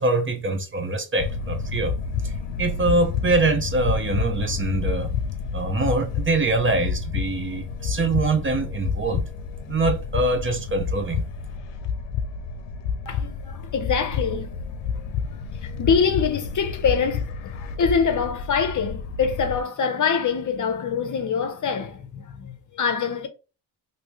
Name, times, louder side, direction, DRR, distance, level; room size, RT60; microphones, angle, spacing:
voice 1, 0.0-1.9 2.2-2.3 2.6-5.1 5.5-9.2 9.7-11.2, right 2 dB, 30° right, 0.7 m, -24 dB
sound 1, 1.2-19.6, left 5 dB, 80° left, 0.6 m, -29 dB
voice 2, 13.1-14.6 15.3-23.3, left 6 dB, 45° left, 0.8 m, -25 dB
3.1 x 2.8 x 3.0 m
cardioid pair, 75°, 44 cm